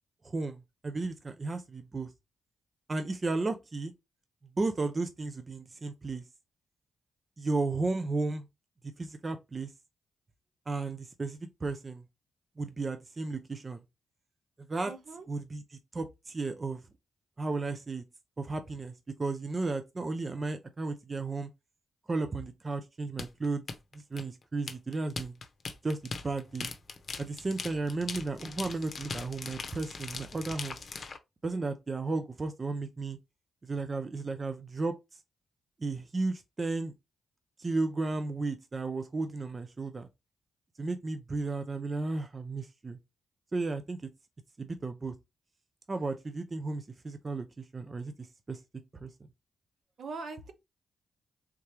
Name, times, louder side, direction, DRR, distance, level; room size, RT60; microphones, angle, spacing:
voice 1, 0.2-2.1 2.9-3.9 4.6-6.2 7.4-8.5 9.0-9.7 10.7-12.0 12.6-13.8 14.7-14.9 15.3-16.8 17.4-18.0 18.4-18.9 19.2-21.5 22.1-23.6 23.9-25.3 25.8-26.7 27.2-30.8 31.4-33.2 33.6-35.2 35.8-36.9 37.6-40.1 40.8-43.0 43.5-44.0 44.6-45.1 45.9-48.6 49.0-49.1, right 3 dB, 40° right, 0.6 m, -34 dB
voice 2, 14.9-15.2 50.0-50.5, right 4 dB, 65° right, 0.8 m, -41 dB
sound 1, 23.2-31.2, left 4 dB, 55° left, 0.7 m, -40 dB
3.6 x 3.2 x 2.9 m
supercardioid pair, 50°, 0 cm